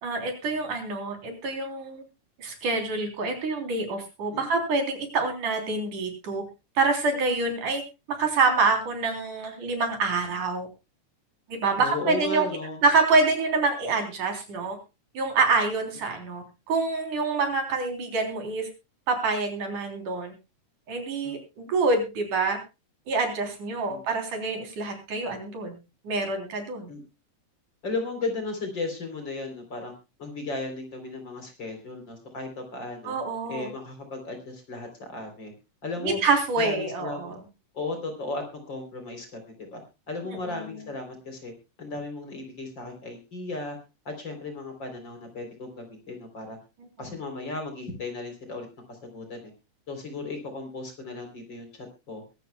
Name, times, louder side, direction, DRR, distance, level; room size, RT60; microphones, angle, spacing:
voice 1, 0.0-2.0 2.4-6.4 6.8-7.8 8.1-10.7 11.5-12.5 12.8-14.8 15.1-18.7 19.1-20.3 20.9-22.6 23.1-25.8 26.0-26.9 33.0-33.7 36.0-37.4 40.4-40.8, right 3 dB, 80° right, 4 dB, 5.1 m, -26 dB
voice 2, 11.8-12.8 21.2-21.4 23.9-24.0 26.9-27.0 27.8-29.9 30.2-33.1 33.5-35.5 35.8-36.2 36.6-37.3 37.7-39.8 40.1-41.5 41.8-43.8 44.1-46.6 47.0-48.7 49.0-49.5 49.9-51.7 52.1-52.2, left 3 dB, 35° left, 5 dB, 4.2 m, -35 dB
22.5 x 13.0 x 2.3 m, 0.28 s
omnidirectional pair, 3.5 m